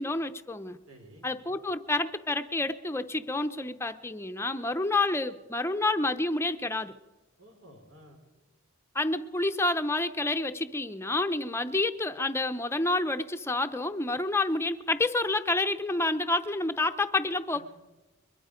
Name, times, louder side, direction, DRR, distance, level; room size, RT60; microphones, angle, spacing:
voice 1, 0.0-0.8 1.2-6.9 8.9-17.6, left 2 dB, 10° left, 8 dB, 0.7 m, -29 dB
voice 2, 0.9-1.3 7.4-8.2 17.5-17.6, right 1 dB, 85° right, 2 dB, 5.1 m, -52 dB
23.0 x 22.0 x 5.1 m, 1.1 s
head